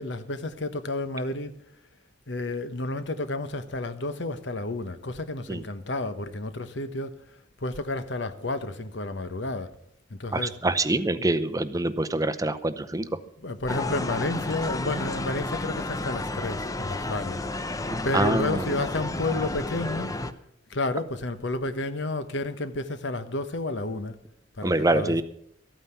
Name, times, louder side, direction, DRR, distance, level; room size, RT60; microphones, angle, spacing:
voice 1, 0.0-1.5 2.3-7.1 7.6-9.7 10.1-10.6 11.2-11.3 13.4-17.4 18.0-20.1 20.7-24.1 24.6-25.2, left 2 dB, 70° left, 1.1 m, -31 dB
voice 2, 10.3-13.1 18.1-18.7 24.6-25.2, right 2 dB, 20° right, 0.6 m, -25 dB
sound 1, 13.7-20.3, left 2 dB, 20° left, 0.6 m, -31 dB
13.5 x 9.1 x 6.9 m
head